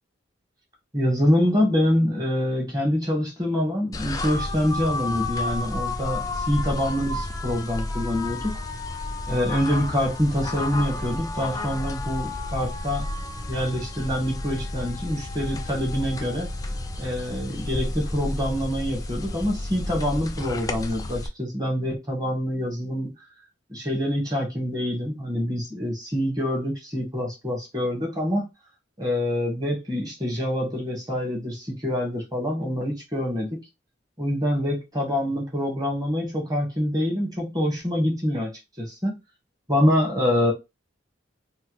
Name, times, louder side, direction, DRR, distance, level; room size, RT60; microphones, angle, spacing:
voice 1, 0.9-8.6 9.3-13.0 13.5-16.5 17.0-23.1 23.7-28.5 29.0-33.6 34.2-39.2 39.7-40.5, left 1 dB, 20° right, 1.2 m, -25 dB
sound 1, 3.9-21.3, left 2 dB, 20° left, 0.3 m, -31 dB
3.1 x 2.2 x 2.9 m
head